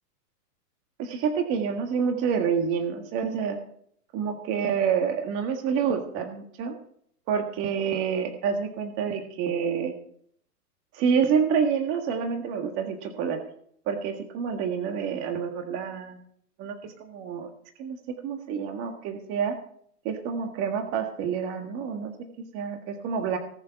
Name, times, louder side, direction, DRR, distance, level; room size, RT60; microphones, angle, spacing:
voice 1, 1.0-3.6 4.1-6.8 7.3-9.9 10.9-13.4 13.9-16.2 16.6-17.5 17.8-18.0 18.2-19.6 20.0-22.1 22.5-23.4, right 6 dB, 30° right, 4 dB, 1.7 m, -28 dB
19.0 x 6.8 x 5.7 m, 0.62 s
hypercardioid pair, 150°, 48 cm